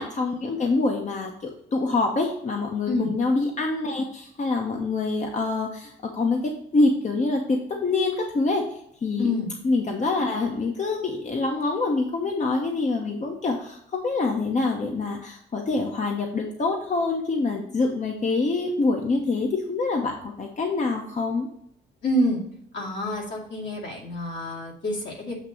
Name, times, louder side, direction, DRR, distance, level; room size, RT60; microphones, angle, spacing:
voice 1, 0.0-8.7 9.0-9.3 9.6-21.5, left 3 dB, 35° left, 2 dB, 0.9 m, -25 dB
voice 2, 9.2-9.5 22.0-22.4 22.7-25.3, left 1 dB, 65° left, -3 dB, 2.5 m, -27 dB
7.9 x 2.9 x 6.2 m, 0.71 s
cardioid pair, 90°, 20 cm